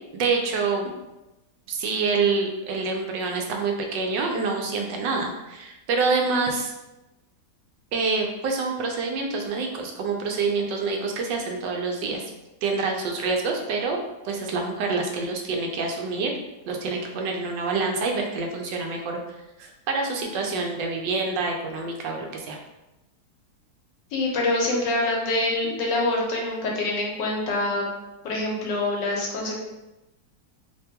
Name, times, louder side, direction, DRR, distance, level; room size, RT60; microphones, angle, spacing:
voice 1, 0.1-0.9 1.7-6.7 7.9-12.2 12.6-16.3 16.7-19.2 19.6-22.6, right 4 dB, 85° right, 2 dB, 1.2 m, -27 dB
voice 2, 24.1-28.0 28.2-29.6, left 2 dB, 80° left, -1 dB, 1.4 m, -25 dB
3.3 x 2.2 x 2.7 m, 0.99 s
omnidirectional pair, 1.9 m